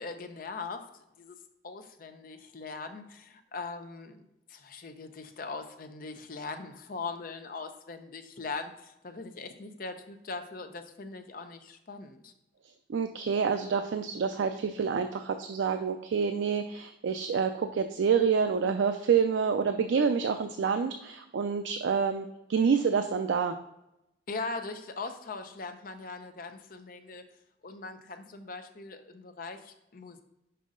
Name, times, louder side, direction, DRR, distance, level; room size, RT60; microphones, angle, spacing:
voice 1, 0.0-1.4 1.6-4.2 4.5-12.3 24.3-27.2 27.6-30.2, left 4 dB, 50° left, 7 dB, 0.6 m, -40 dB
voice 2, 12.9-23.5, right 6 dB, 90° right, 7 dB, 0.4 m, -27 dB
5.6 x 5.1 x 3.7 m, 0.88 s
head